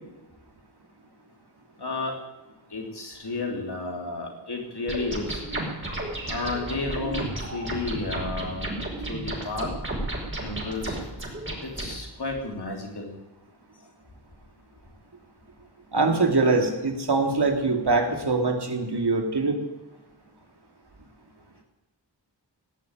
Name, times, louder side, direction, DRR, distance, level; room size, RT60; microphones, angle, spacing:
voice 1, 1.8-2.2 2.7-5.4 6.3-8.7 9.1-9.7 10.4-11.0 11.6-13.1, left 3 dB, 65° left, 1 dB, 3.5 m, -32 dB
sound 1, 4.9-11.9, right 1 dB, 25° right, 5.7 m, -32 dB
voice 2, 15.9-19.6, right 3 dB, 65° right, 3 dB, 2.6 m, -23 dB
17.5 x 7.6 x 9.2 m, 1.0 s
wide cardioid pair, 70°, 43 cm